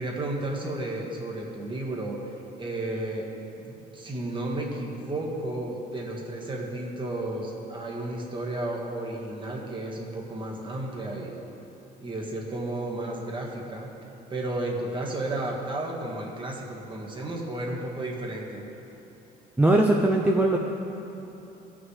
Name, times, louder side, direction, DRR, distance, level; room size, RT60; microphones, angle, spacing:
voice 1, 0.0-2.2 2.6-3.3 3.6-11.4 12.0-13.9 14.3-18.6, right 1 dB, 30° right, -1 dB, 1.6 m, -33 dB
voice 2, 19.6-20.6, right 1 dB, 10° right, 0 dB, 0.5 m, -20 dB
16.0 x 6.0 x 3.2 m, 3.0 s
cardioid pair, 110°, 17 cm